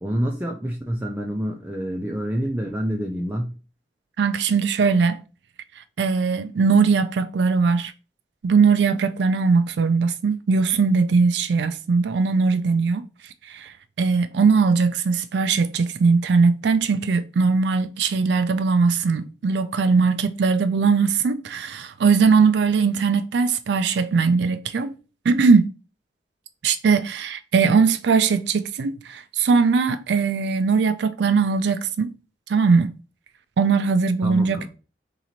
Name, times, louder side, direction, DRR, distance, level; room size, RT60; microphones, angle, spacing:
voice 1, 0.0-3.6 34.2-34.7, equal, 10° right, 0.5 m, -27 dB
voice 2, 4.2-5.2 5.8-7.9 8.4-13.0 13.4-24.9 25.3-25.7 26.6-32.1 32.5-32.9 33.6-34.7, right 5 dB, 75° right, 0.4 m, -20 dB
3.8 x 2.9 x 4.2 m
head